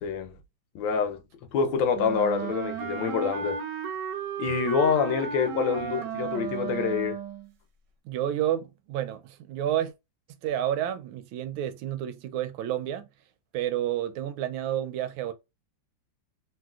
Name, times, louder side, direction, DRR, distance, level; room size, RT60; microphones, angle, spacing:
voice 1, 0.0-0.4 0.7-1.2 1.5-3.6 4.4-7.2, left 6 dB, 75° left, 1.3 m, -26 dB
Wind instrument woodwind instrument, 1.9-7.5, right 8 dB, 70° right, 1.2 m, -34 dB
voice 2, 8.0-9.9 10.4-13.1 13.5-15.3, right 11 dB, 90° right, 1.4 m, -30 dB
3.0 x 2.8 x 2.3 m
omnidirectional pair, 2.1 m